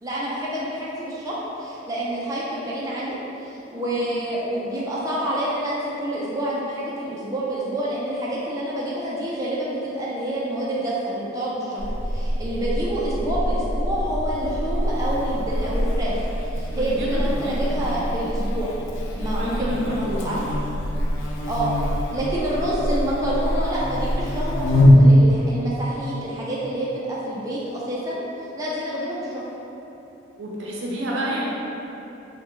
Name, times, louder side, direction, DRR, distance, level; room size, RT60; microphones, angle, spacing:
voice 1, 0.0-18.8 19.1-20.4 21.5-21.7 22.1-29.5, right 1 dB, 20° right, -7 dB, 0.3 m, -28 dB
Buzz, 11.8-24.9, left 1 dB, 75° left, 0.4 m, -24 dB
voice 2, 16.7-18.0 19.3-20.4 30.4-31.4, equal, 75° right, -4 dB, 0.5 m, -29 dB
3.3 x 2.1 x 2.9 m, 3.0 s
head